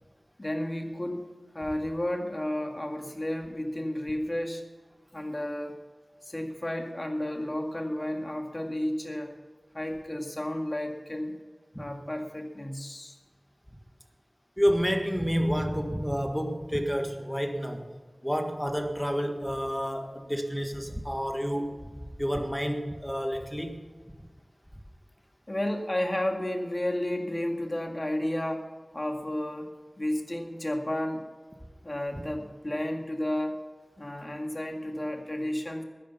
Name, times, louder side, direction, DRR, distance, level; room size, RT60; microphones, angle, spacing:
voice 1, 0.4-1.3 1.5-4.6 5.1-5.8 6.3-9.4 9.7-11.4 11.8-13.2 25.5-28.7 28.9-31.2 31.8-33.6 34.0-35.8, left 1 dB, 30° left, 3 dB, 2.0 m, -32 dB
voice 2, 14.6-17.8 18.2-21.8 22.2-23.8, equal, 5° left, 5 dB, 1.7 m, -29 dB
14.5 x 10.0 x 5.6 m, 1.4 s
wide cardioid pair, 55°, 0 cm